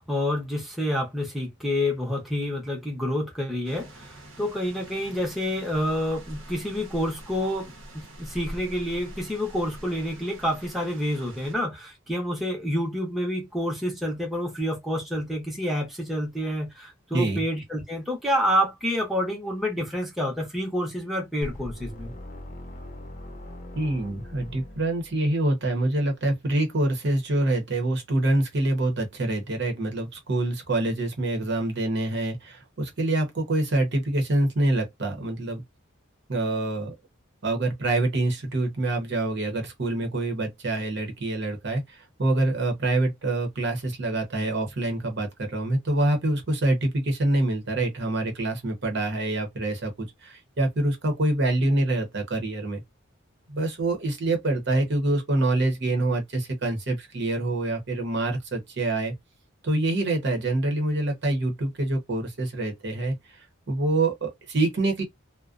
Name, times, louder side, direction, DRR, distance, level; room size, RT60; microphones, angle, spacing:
voice 1, 0.0-22.1, equal, ahead, 0.7 m, -28 dB
sound 1, 3.6-11.5, right 1 dB, 90° right, 0.9 m, -44 dB
voice 2, 17.1-17.4 23.7-35.6 36.3-36.9 37.4-52.8 53.5-59.1 59.6-65.0, right 2 dB, 60° right, 0.8 m, -26 dB
sound 2, 21.4-25.4, left 1 dB, 40° left, 0.6 m, -41 dB
2.4 x 2.1 x 2.4 m
head